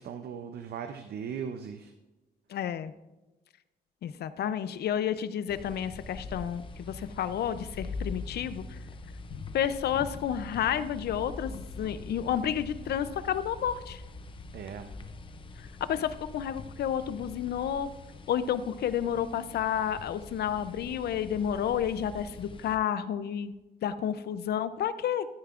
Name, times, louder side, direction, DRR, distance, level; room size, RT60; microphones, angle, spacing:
voice 1, 0.0-1.9 14.5-14.9, right 7 dB, 90° right, 7 dB, 0.5 m, -38 dB
voice 2, 2.5-2.9 4.0-8.8 9.3-14.0 15.8-17.9 18.3-23.5 23.8-25.3, left 9 dB, 90° left, 14 dB, 0.5 m, -31 dB
sound 1, 5.5-22.8, left 3 dB, 30° left, 0.5 m, -43 dB
13.0 x 9.3 x 2.4 m, 1.1 s
wide cardioid pair, 180°, 16 cm